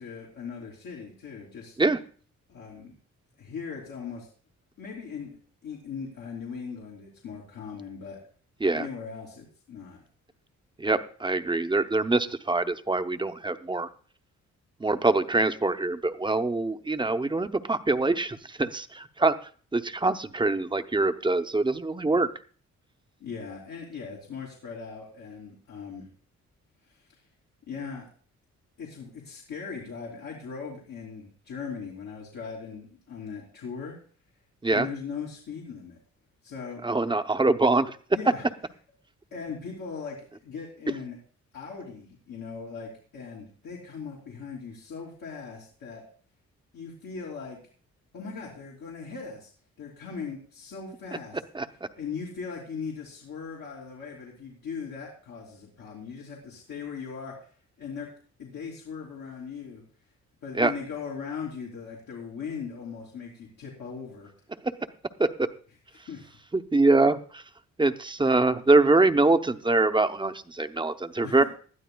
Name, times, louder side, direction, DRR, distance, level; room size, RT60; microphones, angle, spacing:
voice 1, 0.0-1.8 2.5-2.9 3.4-4.3 4.8-5.4 5.6-8.2 8.7-10.0 23.2-26.1 26.9-27.1 27.7-28.1 28.8-34.0 34.7-36.0 36.4-36.8 38.1-38.5 39.3-40.2 40.4-41.2 41.5-46.0 46.7-47.6 48.1-49.5 49.8-51.4 51.9-57.5 57.8-58.1 58.4-59.8 60.4-64.3 66.1-66.4 71.2-71.4, left 5 dB, 85° left, -5 dB, 3.0 m, -39 dB
voice 2, 10.8-13.9 14.8-19.3 19.7-22.3 34.6-34.9 36.8-38.0 51.5-51.7 60.6-60.7 65.2-65.5 66.5-67.4 67.8-71.4, right 2 dB, 15° right, 8 dB, 0.7 m, -24 dB
19.5 x 12.0 x 2.3 m, 0.43 s
cardioid pair, 105°, 30 cm